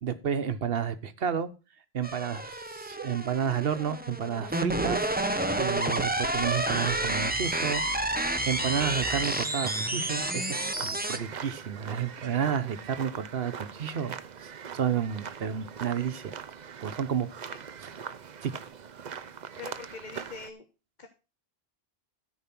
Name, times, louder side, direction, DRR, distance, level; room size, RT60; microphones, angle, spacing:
voice 1, 0.0-1.5 1.9-5.1 5.6-7.8 8.4-14.2 14.7-16.4 16.8-17.3 17.8-18.0 18.4-18.5, right 8 dB, 70° right, 11 dB, 1.1 m, -31 dB
sound 1, 2.0-11.2, right 1 dB, 10° right, 0.8 m, -30 dB
sound 2, 7.7-20.5, right 7 dB, 50° right, 0.7 m, -42 dB
voice 2, 19.6-20.6 21.0-21.1, left 5 dB, 50° left, 5 dB, 1.1 m, -42 dB
13.5 x 4.8 x 5.9 m, 0.32 s
omnidirectional pair, 1.0 m